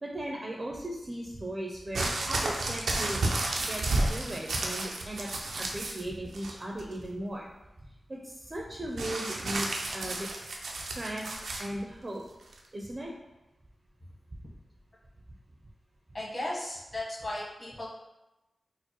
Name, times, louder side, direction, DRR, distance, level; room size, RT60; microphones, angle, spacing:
voice 1, 0.0-3.2 3.7-5.3 5.6-7.4 8.1-10.3 10.7-12.2 12.7-13.1, right 1 dB, 35° right, -1 dB, 0.5 m, -37 dB
sound 1, 1.9-6.0 6.3-6.9 9.0-11.7 12.5-12.6, right 2 dB, 85° right, 0.4 m, -31 dB
voice 2, 16.1-17.9, left 1 dB, 40° left, -6 dB, 1.2 m, -36 dB
4.4 x 2.1 x 2.9 m, 1.0 s
wide cardioid pair, 80°, 0 cm